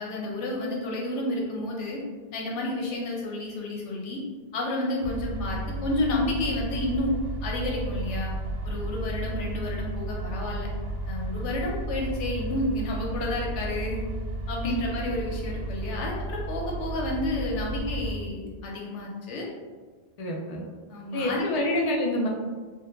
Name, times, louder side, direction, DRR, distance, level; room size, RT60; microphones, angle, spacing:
voice 1, 0.0-2.0 2.3-4.2 4.5-7.1 7.4-8.3 8.6-10.7 11.1-14.0 14.5-19.5 20.9-21.5, left 1 dB, 90° left, -2 dB, 1.0 m, -30 dB
sound 1, 5.0-18.1, right 2 dB, 65° right, 0.8 m, -33 dB
voice 2, 20.2-20.6 21.1-22.3, left 1 dB, 60° left, -2 dB, 0.4 m, -27 dB
2.1 x 2.1 x 3.0 m, 1.4 s
omnidirectional pair, 1.2 m